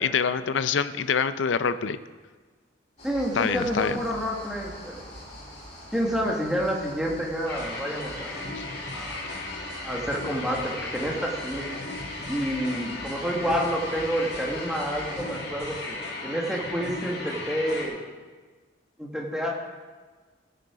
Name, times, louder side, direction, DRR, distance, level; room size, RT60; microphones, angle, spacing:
voice 1, 0.0-2.0 3.3-4.0 8.5-8.6, left 6 dB, 75° left, 12 dB, 0.5 m, -25 dB
sound 1, 3.0-15.2, left 1 dB, 35° left, 3.0 m, -45 dB
voice 2, 3.0-5.0 5.9-8.4 8.9-9.3 9.8-11.7 12.3-18.0 19.0-19.5, equal, 5° right, -2 dB, 1.5 m, -29 dB
sound 2, 7.5-17.9, left 2 dB, 60° left, 2.2 m, -36 dB
15.5 x 6.7 x 4.9 m, 1.4 s
head